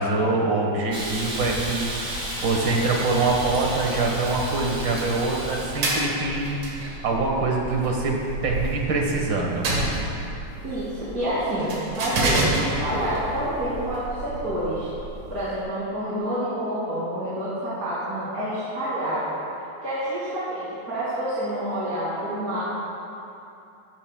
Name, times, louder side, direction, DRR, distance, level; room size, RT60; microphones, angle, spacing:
voice 1, 0.0-9.7, right 3 dB, 50° right, 0 dB, 1.5 m, -24 dB
Hiss, 0.9-5.9, equal, 10° right, 1.3 m, -32 dB
sound 1, 3.2-15.6, right 2 dB, 80° right, 3.2 m, -31 dB
voice 2, 10.6-14.9 15.3-19.2 19.8-22.6, right 1 dB, 30° right, -12 dB, 2.6 m, -28 dB
15.0 x 13.5 x 2.2 m, 2.7 s
omnidirectional pair, 3.4 m